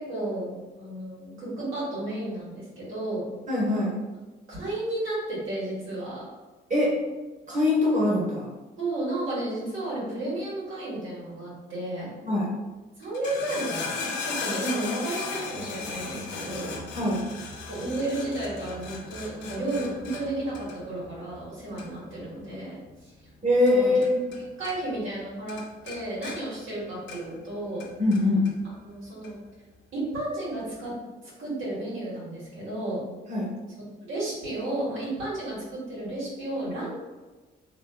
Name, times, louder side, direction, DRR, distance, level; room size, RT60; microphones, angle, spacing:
voice 1, 0.0-3.2 4.5-6.3 8.8-12.1 13.0-16.8 17.7-23.1 23.5-23.9 24.4-27.9 28.8-29.4 29.9-30.9 31.4-33.0 34.1-36.9, right 1 dB, 80° right, -9 dB, 1.3 m, -32 dB
voice 2, 3.5-3.9 6.7-6.9 7.5-8.5 12.2-12.5 16.9-17.2 23.4-24.2 28.0-28.5 33.3-33.5, left 2 dB, 40° right, -4 dB, 1.1 m, -22 dB
sound 1, 13.0-24.4 24.6-25.2 25.5-27.4 27.8-28.5 29.2-29.3, left 4 dB, 70° left, 0.5 m, -37 dB
2.7 x 2.6 x 2.2 m, 1.2 s
cardioid pair, 90°, 20 cm